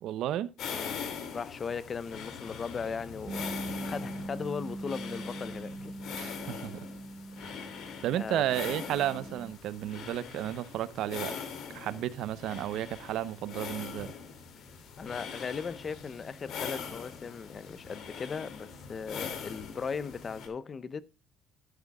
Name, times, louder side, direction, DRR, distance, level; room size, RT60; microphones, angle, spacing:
voice 1, 0.0-0.5 6.2-6.7 7.4-7.5 8.0-11.3 11.7-14.1, right 12 dB, 75° right, 0.7 m, -32 dB
sound 1, 0.6-20.5, left 6 dB, 65° left, 2.5 m, -42 dB
voice 2, 0.7-1.1 1.3-5.9 8.1-8.5 15.0-21.0, left 5 dB, 35° left, 0.7 m, -38 dB
Bass guitar, 3.3-9.5, right 2 dB, 30° right, 1.8 m, -41 dB
12.5 x 10.5 x 2.3 m
cardioid pair, 100°, 0 cm